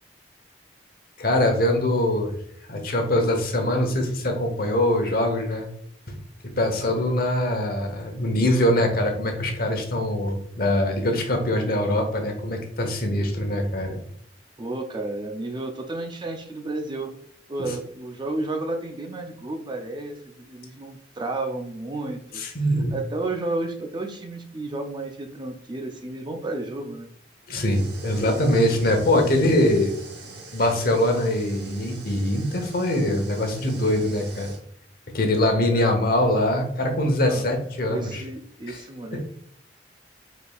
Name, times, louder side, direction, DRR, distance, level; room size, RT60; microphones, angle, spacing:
voice 1, 1.2-2.3 2.7-5.7 6.1-6.2 6.4-14.0 22.3-22.9 27.5-29.9 30.5-34.5 35.1-38.2 38.7-38.8 39.1-39.2, left 1 dB, 55° left, 4 dB, 1.0 m, -23 dB
voice 2, 14.6-17.1 17.5-22.4 22.9-27.1 35.7-36.0 37.2-37.6 37.9-39.2, right 2 dB, 25° right, 4 dB, 0.5 m, -32 dB
sound 1, 27.6-34.6, right 2 dB, 70° right, 1.0 m, -43 dB
5.0 x 4.3 x 2.3 m, 0.66 s
head